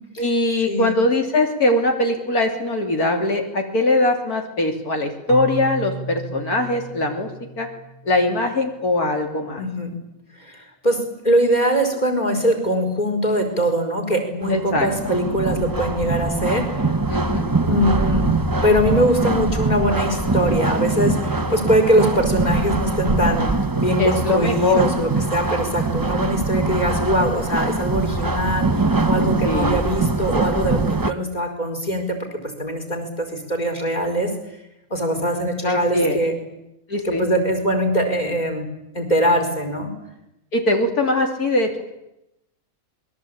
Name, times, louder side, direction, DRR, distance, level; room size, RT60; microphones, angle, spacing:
voice 1, 0.2-7.3 7.6-7.7 8.1-9.6 14.5-14.9 17.1-17.5 24.0-24.9 29.4-29.8 35.6-36.2 36.9-37.3 40.5-41.8, left 2 dB, 75° left, 3 dB, 3.4 m, -21 dB
Keyboard (musical), 5.3-9.0, right 4 dB, 85° right, 1.7 m, -35 dB
voice 2, 9.6-9.9 10.4-11.0 11.2-16.7 17.7-18.2 18.6-23.5 23.8-32.2 32.6-34.3 34.9-36.3 37.0-38.6 38.9-39.9, equal, 25° left, 5 dB, 4.9 m, -22 dB
sound 1, 14.4-31.1, right 3 dB, 15° right, 0.8 m, -23 dB
27.0 x 21.5 x 8.7 m, 0.87 s
omnidirectional pair, 1.6 m